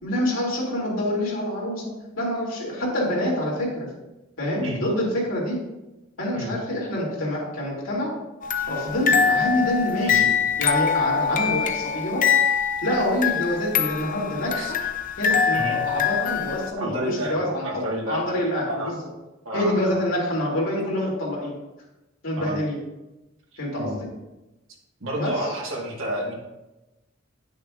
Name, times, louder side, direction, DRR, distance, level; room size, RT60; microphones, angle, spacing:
voice 1, 0.0-3.9 4.4-5.6 6.2-8.1 8.7-10.3 10.6-12.3 12.8-14.8 15.2-19.0 19.5-21.5 22.2-22.8 23.6-23.9 25.2-25.3, left 1 dB, 80° left, -4 dB, 2.6 m, -26 dB
sound 1, 8.4-16.7, left 7 dB, 45° left, 0.6 m, -24 dB
voice 2, 16.8-18.2 18.7-18.9 19.4-20.0 22.4-22.6 23.8-24.0 25.0-26.3, equal, 85° right, -2 dB, 1.7 m, -30 dB
9.6 x 6.4 x 2.5 m, 1.0 s
head